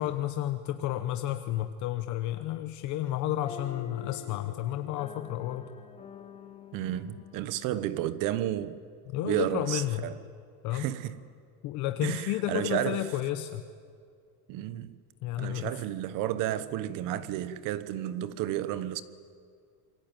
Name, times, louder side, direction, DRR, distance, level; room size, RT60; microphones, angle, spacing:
voice 1, 0.0-5.7 9.1-10.1 10.6-10.9 11.6-13.6 15.2-15.7, left 13 dB, 40° left, 1.0 m, -31 dB
sound 1, 3.4-8.9, left 8 dB, 15° left, 0.9 m, -46 dB
voice 2, 6.7-8.8 9.2-10.2 10.7-11.2 12.0-13.0 14.5-14.9 15.4-19.0, right 12 dB, 45° right, 1.2 m, -32 dB
27.5 x 23.0 x 9.1 m
supercardioid pair, 160°, 46 cm